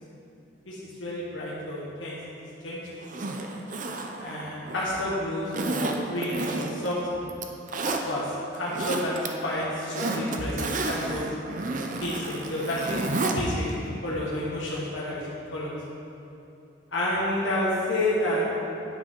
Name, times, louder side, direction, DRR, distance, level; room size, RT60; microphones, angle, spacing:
voice 1, 0.6-2.2 2.6-3.0 4.2-7.0 7.8-9.1 9.4-11.3 12.0-15.7 16.9-18.4, left 1 dB, 90° left, -7 dB, 1.4 m, -30 dB
Zipper (clothing), 3.0-5.0 5.5-6.9 7.3-8.0 8.5-9.3 9.6-13.4 13.7-13.8, right 3 dB, 45° right, 0.6 m, -31 dB
10.5 x 6.0 x 4.4 m, 2.8 s
head